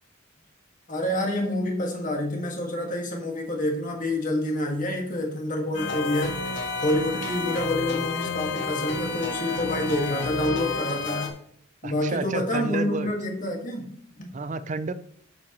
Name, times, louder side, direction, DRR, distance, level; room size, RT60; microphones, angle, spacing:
voice 1, 0.9-6.4 6.8-11.3 11.8-14.3, left 1 dB, 40° left, 1 dB, 1.8 m, -28 dB
sound 1, 5.7-11.3, left 4 dB, 55° left, 1.3 m, -30 dB
voice 2, 11.8-13.1 14.3-14.9, right 3 dB, 35° right, 13 dB, 0.4 m, -30 dB
8.5 x 7.3 x 3.0 m, 0.63 s
head